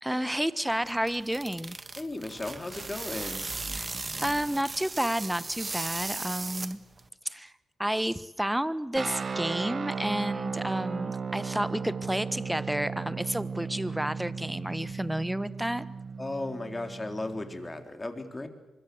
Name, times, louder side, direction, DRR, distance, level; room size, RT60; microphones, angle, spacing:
voice 1, 0.0-1.8 3.7-3.9 4.2-6.8 7.2-7.5 7.8-15.9, right 1 dB, 5° right, 15 dB, 1.2 m, -31 dB
sound 1, 0.7-7.1, right 3 dB, 30° right, 1.5 m, -37 dB
voice 2, 2.0-3.4 16.2-18.5, left 2 dB, 25° left, 6 dB, 3.7 m, -35 dB
sound 2, 9.0-17.8, right 5 dB, 50° right, 1.1 m, -36 dB
24.5 x 21.5 x 7.9 m, 1.1 s
supercardioid pair, 55°, 0 cm